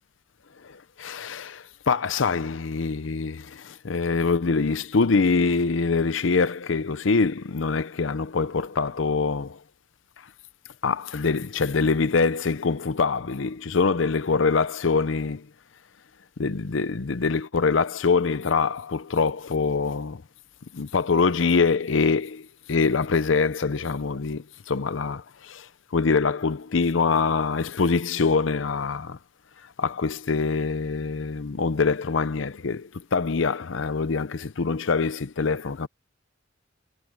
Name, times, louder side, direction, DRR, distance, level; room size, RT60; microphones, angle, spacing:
voice 1, 0.6-9.6 10.8-15.5 16.4-20.2 20.7-29.2 29.8-35.9, left 4 dB, 80° left, 0.6 m, -24 dB
head